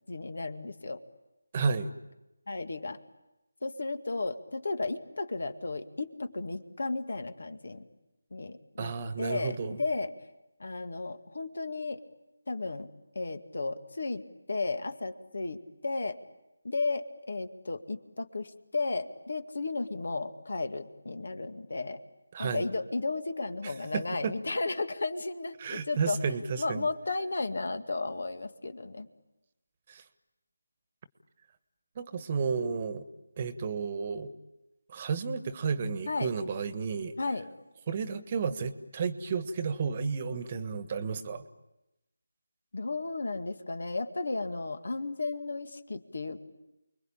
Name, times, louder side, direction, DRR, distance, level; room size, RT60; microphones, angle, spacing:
voice 1, 0.1-1.0 2.5-3.0 3.6-7.9 8.3-10.1 10.6-12.0 12.5-14.2 14.5-16.2 16.6-22.0 22.4-26.2 26.6-29.1 36.1-36.3 37.2-37.5 42.7-46.5, left 3 dB, 65° left, 9 dB, 2.1 m, -34 dB
voice 2, 1.5-1.9 8.8-9.8 22.3-22.6 23.6-24.3 25.6-26.9 29.9-30.0 32.0-33.0 33.4-34.3 34.9-37.1 37.9-41.4, right 5 dB, 30° right, 11 dB, 1.5 m, -32 dB
29.5 x 22.5 x 8.8 m, 0.95 s
figure-of-eight pair, 165°, 0 cm